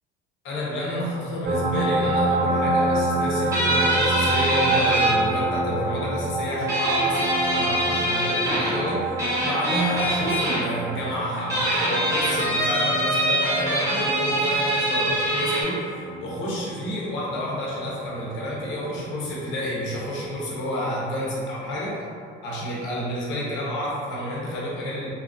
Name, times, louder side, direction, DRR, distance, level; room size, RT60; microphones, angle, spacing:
voice 1, 0.4-9.0 9.4-21.9 22.4-25.1, equal, 65° left, -6 dB, 0.8 m, -29 dB
sound 1, 1.4-18.7 20.2-20.3, right 2 dB, 45° right, 0.4 m, -28 dB
sound 2, 3.5-5.1 6.7-8.7 9.2-10.6 11.4-15.6, right 1 dB, 15° right, 0.7 m, -24 dB
2.8 x 2.4 x 2.6 m, 2.3 s
cardioid pair, 170°, 21 cm